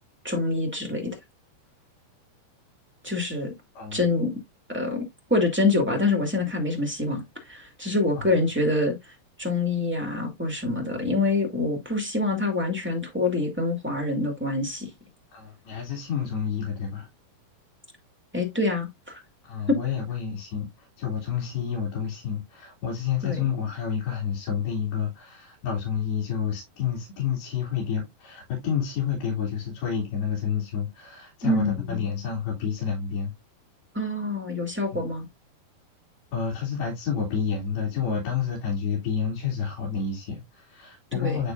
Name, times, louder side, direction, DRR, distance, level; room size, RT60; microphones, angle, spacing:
voice 1, 0.2-1.2 3.0-3.5 3.9-4.3 4.7-14.9 18.3-19.2 19.7-19.8 23.2-23.5 31.4-32.0 33.9-35.3 41.1-41.4, left 2 dB, 10° right, 0.7 m, -26 dB
voice 2, 3.8-4.1 8.2-8.3 15.3-17.1 19.4-33.3 34.9-35.1 36.3-41.5, left 7 dB, 70° left, 4.6 m, -29 dB
11.5 x 4.4 x 2.6 m
omnidirectional pair, 4.6 m